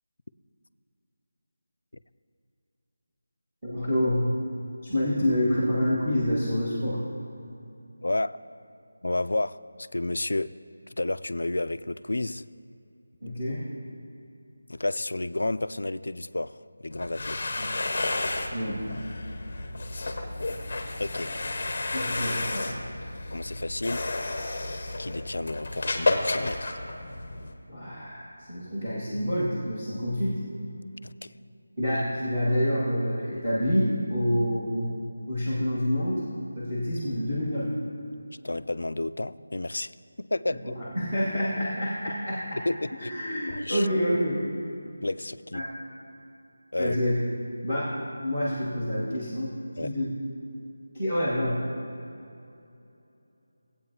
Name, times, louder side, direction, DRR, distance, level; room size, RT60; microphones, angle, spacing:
voice 1, 3.6-4.3 4.8-7.0 13.2-13.7 17.6-17.7 18.5-19.0 21.9-22.7 27.7-30.4 31.8-35.0 35.3-36.2 36.5-37.7 40.7-42.6 43.1-44.4 45.5-45.7 46.8-47.2 47.6-49.5 49.8-50.1 50.9-51.6, equal, 15° right, -12 dB, 1.4 m, -27 dB
voice 2, 8.0-8.3 9.0-10.5 11.0-12.4 14.7-17.5 21.0-21.3 23.3-24.0 25.0-26.8 31.0-31.3 38.4-39.9 40.2-40.7 42.7-43.1 43.5-43.8 45.0-45.6 46.7-47.0 49.8-49.9, left 2 dB, 90° left, 14 dB, 0.3 m, -31 dB
sound 1, 16.9-27.5, left 2 dB, 30° left, 0.7 m, -31 dB
17.0 x 8.5 x 2.8 m, 2.7 s
figure-of-eight pair, 180°, 0 cm